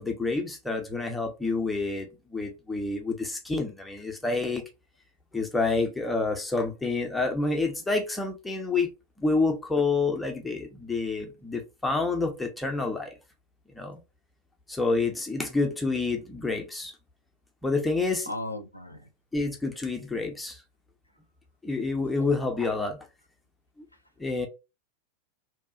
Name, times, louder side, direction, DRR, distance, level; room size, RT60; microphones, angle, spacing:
voice 1, 0.0-4.6 5.3-8.9 9.2-13.1 13.7-14.0 14.7-16.9 17.6-18.3 19.3-20.6 21.6-23.1 23.8-23.9 24.2-24.5, left 3 dB, 5° left, 0.6 m, -28 dB
voice 2, 18.3-19.1, left 2 dB, 90° left, 0.4 m, -36 dB
2.7 x 2.3 x 2.3 m
figure-of-eight pair, 90°, 0 cm